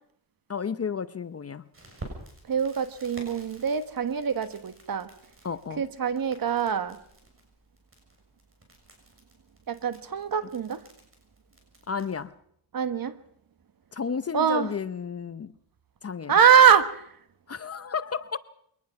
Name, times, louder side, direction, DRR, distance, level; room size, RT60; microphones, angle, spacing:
voice 1, 0.5-1.7 5.4-5.8 11.9-12.3 13.9-15.5 16.0-16.4 17.5-18.4, left 6 dB, 30° left, 0.7 m, -32 dB
Crackle, 1.7-12.3, right 2 dB, 30° right, 7.0 m, -50 dB
voice 2, 2.5-5.1 5.8-7.0 9.7-10.8 12.7-13.2 14.3-14.7 16.3-17.0, right 7 dB, 45° right, 1.3 m, -23 dB
23.0 x 19.0 x 5.8 m
cardioid pair, 110°, 46 cm